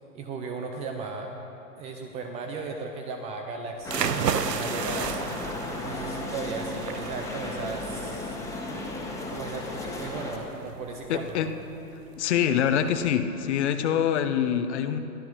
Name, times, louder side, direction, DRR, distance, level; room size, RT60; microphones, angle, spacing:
voice 1, 0.1-1.3 1.8-5.3 5.8-8.4 9.3-11.3, right 4 dB, 15° right, 4 dB, 0.6 m, -36 dB
sound 1, 3.8-10.4, left 2 dB, 5° left, 1.6 m, -34 dB
sound 2, 3.8-13.1, right 8 dB, 80° right, 0.9 m, -34 dB
voice 2, 11.1-11.5 12.2-15.0, left 9 dB, 45° left, 9 dB, 1.0 m, -25 dB
22.0 x 14.0 x 4.6 m, 3.0 s
hypercardioid pair, 130°, 48 cm